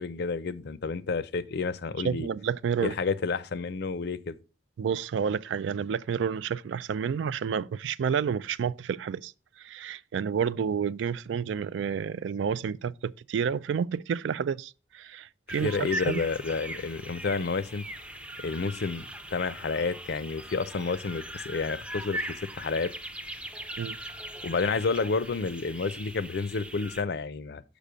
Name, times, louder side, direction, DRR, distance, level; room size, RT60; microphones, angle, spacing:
voice 1, 0.0-2.3 2.8-4.4 15.6-17.8 18.4-22.9 24.4-27.6, left 4 dB, 60° left, 0.5 m, -30 dB
voice 2, 2.0-2.9 4.8-9.3 9.6-16.2 23.8-24.0, right 7 dB, 80° right, 0.3 m, -30 dB
sound 1, 15.5-27.0, right 1 dB, 5° right, 0.5 m, -40 dB
6.8 x 5.0 x 5.0 m
head